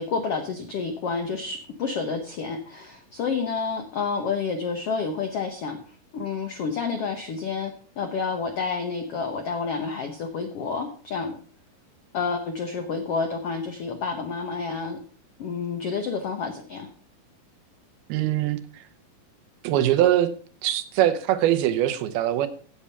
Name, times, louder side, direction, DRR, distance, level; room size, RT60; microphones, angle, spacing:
voice 1, 0.0-5.8 6.1-11.4 12.1-15.0 15.4-16.9, left 5 dB, 90° left, 5 dB, 1.3 m, -29 dB
voice 2, 18.1-18.6 19.6-20.3 20.6-22.5, right 12 dB, 90° right, 10 dB, 2.8 m, -22 dB
8.7 x 8.4 x 5.7 m, 0.43 s
omnidirectional pair, 4.3 m